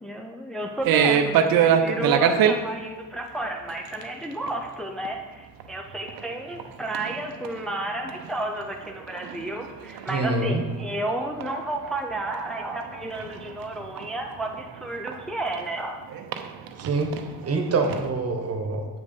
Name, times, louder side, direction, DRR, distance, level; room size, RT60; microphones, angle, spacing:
voice 1, 0.0-16.0, right 1 dB, ahead, 1 dB, 0.7 m, -32 dB
sound 1, 0.8-2.6 3.7-4.0 4.3-4.5 5.0-5.1 5.6-5.7 6.0-6.7 6.9-8.3 8.6-11.9 12.3-15.6 16.1-18.1, right 8 dB, 75° right, 0.7 m, -25 dB
voice 2, 10.1-10.6 16.8-17.1 17.4-18.9, right 3 dB, 40° right, 4 dB, 1.3 m, -25 dB
7.8 x 5.1 x 5.5 m, 1.2 s
cardioid pair, 85°, 36 cm